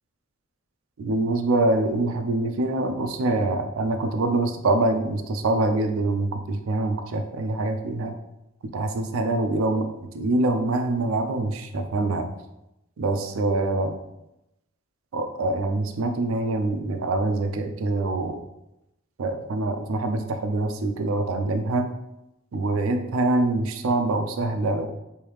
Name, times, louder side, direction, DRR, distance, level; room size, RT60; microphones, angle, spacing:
voice 1, 1.0-8.1 8.6-12.3 13.0-14.0 15.1-18.4 19.2-21.9 22.5-24.9, right 2 dB, 90° right, 6 dB, 0.4 m, -25 dB
3.4 x 2.7 x 3.1 m, 0.89 s
head